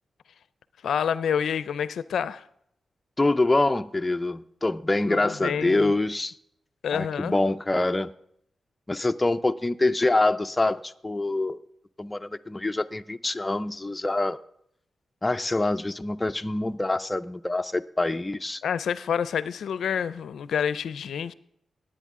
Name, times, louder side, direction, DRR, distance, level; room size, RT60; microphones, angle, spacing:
voice 1, 0.8-2.4 5.0-5.9 6.8-7.4 18.6-21.3, left 8 dB, 90° left, 0.4 m, -28 dB
voice 2, 3.2-6.4 6.9-8.1 8.9-11.6 12.0-14.4 15.2-18.6, left 2 dB, 15° left, 0.4 m, -25 dB
18.5 x 8.9 x 3.6 m
wide cardioid pair, 110°, 0 cm